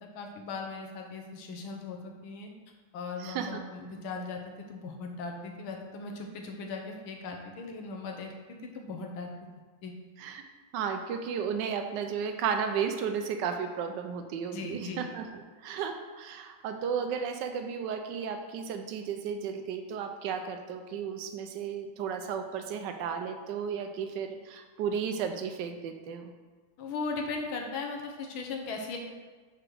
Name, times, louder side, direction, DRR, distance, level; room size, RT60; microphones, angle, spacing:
voice 1, 0.1-2.5 2.9-9.3 9.8-9.9 14.5-15.0 26.8-29.0, left 4 dB, 75° left, 2 dB, 1.6 m, -38 dB
voice 2, 3.2-3.6 10.2-10.4 10.7-26.3, right 7 dB, 75° right, 6 dB, 1.0 m, -34 dB
5.0 x 4.8 x 6.0 m, 1.4 s
omnidirectional pair, 2.3 m